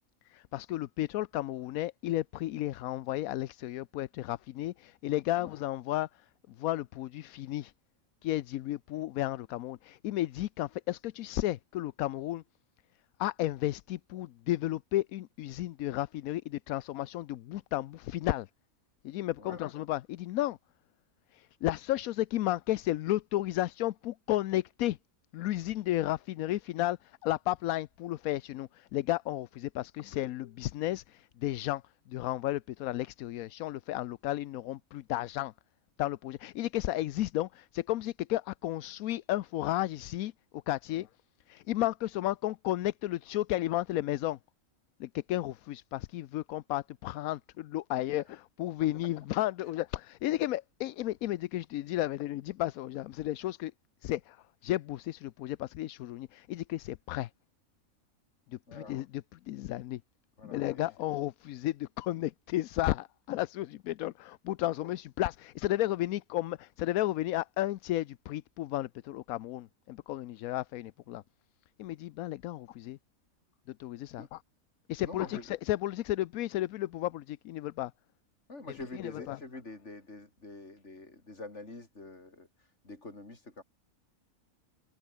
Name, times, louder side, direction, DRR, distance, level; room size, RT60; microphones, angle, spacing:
voice 1, 0.3-7.7 8.2-12.4 13.2-18.5 19.0-20.6 21.3-25.0 25.3-31.8 32.1-35.5 36.0-41.1 41.5-44.4 45.0-53.7 54.0-57.3 58.5-60.0 60.4-71.2 71.8-73.0 73.7-74.4 74.9-77.9 79.0-79.4, left 15 dB, 85° left, 1.1 m, -33 dB
voice 2, 19.4-19.7 40.9-41.1 58.7-59.0 60.4-60.9 74.2-74.3 75.0-75.5 78.5-83.6, left 2 dB, 55° left, 4.3 m, -46 dB
omnidirectional pair, 1.5 m